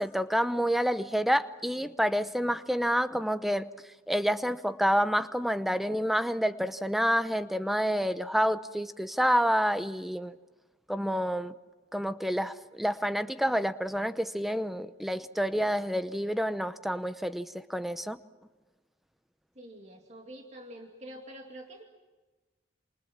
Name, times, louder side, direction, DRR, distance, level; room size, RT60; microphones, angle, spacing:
voice 1, 0.0-3.7 4.1-10.4 10.9-11.5 11.9-18.2, equal, ahead, 11 dB, 0.8 m, -28 dB
voice 2, 19.5-21.8, right 1 dB, 35° right, 2 dB, 2.5 m, -46 dB
28.0 x 28.0 x 6.0 m, 1.2 s
head